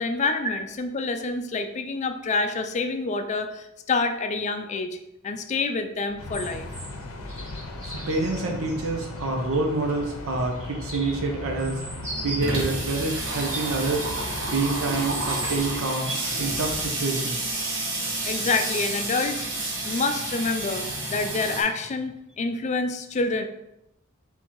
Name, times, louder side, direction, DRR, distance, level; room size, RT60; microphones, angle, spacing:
voice 1, 0.0-5.0 5.2-6.7 18.2-19.5 19.8-23.4, left 3 dB, 35° left, 8 dB, 0.4 m, -27 dB
sound 1, 6.1-9.6 10.3-12.6 13.1-14.5 14.9-16.4 18.2-20.0 20.3-21.6 22.3-22.4, right 1 dB, 35° right, 1.6 m, -40 dB
sound 2, 6.2-15.8, left 2 dB, 90° left, 0.7 m, -37 dB
voice 2, 7.8-11.8 12.2-14.0 14.5-16.1 16.4-17.4, right 3 dB, 75° right, 2 dB, 0.7 m, -27 dB
Water tap faucet / Sink (filling or washing), 11.0-11.1 11.4-11.5 11.7-21.6, right 2 dB, 60° right, 1.1 m, -30 dB
4.3 x 3.6 x 3.0 m, 0.86 s
head